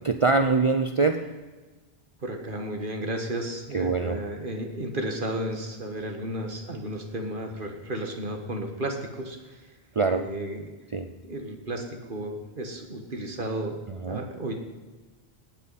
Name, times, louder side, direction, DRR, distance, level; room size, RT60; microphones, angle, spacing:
voice 1, 0.1-1.3 3.7-4.2 10.0-10.3 10.9-11.1 13.9-14.2, right 4 dB, 40° right, 7 dB, 0.5 m, -24 dB
voice 2, 2.2-9.7 10.1-10.7 11.2-14.5, right 1 dB, 55° right, 4 dB, 1.7 m, -33 dB
19.0 x 9.2 x 4.2 m, 1.2 s
omnidirectional pair, 1.1 m